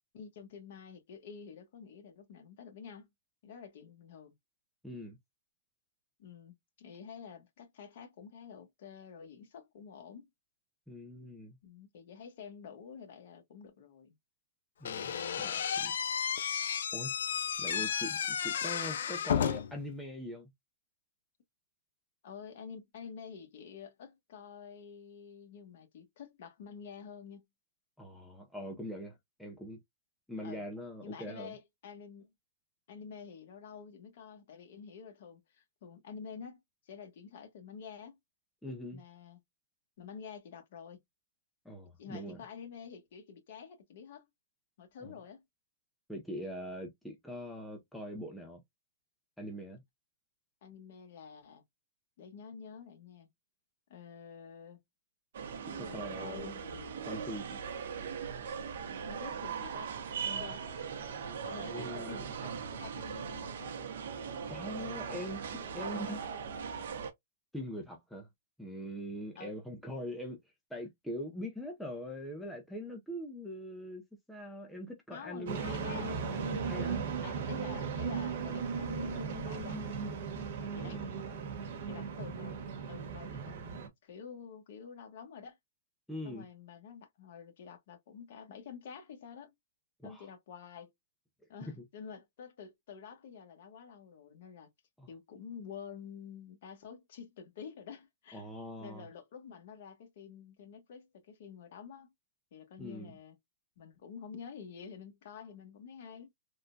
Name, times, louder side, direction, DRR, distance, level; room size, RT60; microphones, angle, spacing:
voice 1, 0.1-3.1 3.4-4.3 6.2-10.3 11.6-14.1 17.7-17.9 22.2-27.5 30.4-30.6 31.0-32.3 32.9-36.6 36.9-38.2 38.9-39.4 40.0-41.0 42.0-44.3 44.8-45.4 50.6-51.6 52.2-53.3 53.9-54.8 55.8-56.9 59.0-60.0 60.2-60.6 61.4-63.9 65.0-65.3 65.6-66.2 69.4-69.5 75.1-76.3 77.2-80.2 80.6-81.0 81.9-82.6 82.9-83.8 84.0-85.6 86.2-89.5 90.0-90.9 91.5-94.7 95.1-98.5 98.8-102.1 102.5-103.4 103.8-106.3, left 6 dB, 50° left, 1.0 m, -49 dB
voice 2, 4.8-5.2 10.9-11.6 14.8-15.9 16.9-17.1 17.6-20.5 28.0-29.8 30.3-31.5 38.6-39.0 41.6-42.4 45.0-45.1 46.1-48.6 49.4-49.8 55.7-56.5 57.1-57.6 61.6-62.3 64.5-65.4 65.7-66.2 67.5-68.3 68.6-70.4 70.7-75.6 76.7-77.1 80.8-81.1 86.1-86.5 90.0-90.3 95.0-95.1 98.3-99.1 102.8-103.2, equal, ahead, 0.5 m, -42 dB
Slam / Squeak, 14.8-19.8, left 8 dB, 70° left, 0.4 m, -33 dB
sound 1, 55.3-67.1, right 6 dB, 65° right, 0.8 m, -40 dB
sound 2, 75.5-83.9, right 5 dB, 50° right, 1.0 m, -37 dB
3.6 x 2.2 x 2.6 m
hypercardioid pair, 165°, 0 cm